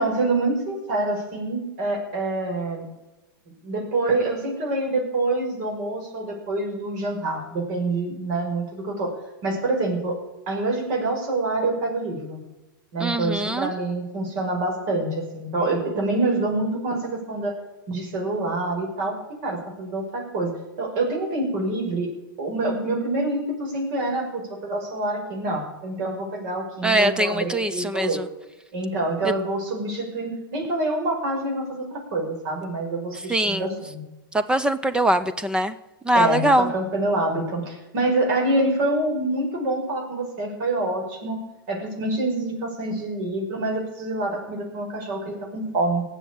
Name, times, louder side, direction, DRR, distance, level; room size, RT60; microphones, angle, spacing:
voice 1, 0.0-2.8 3.6-9.1 9.4-10.2 10.5-12.4 12.9-17.5 17.9-20.5 20.8-22.1 22.4-28.2 28.7-34.0 36.1-41.4 41.7-46.0, right 2 dB, 50° right, 1 dB, 5.8 m, -26 dB
voice 2, 13.0-13.7 26.8-28.2 33.3-33.7 34.3-35.7 36.1-36.7, right 1 dB, 5° right, 12 dB, 0.6 m, -22 dB
19.0 x 7.4 x 8.6 m, 1.0 s
hypercardioid pair, 135°, 12 cm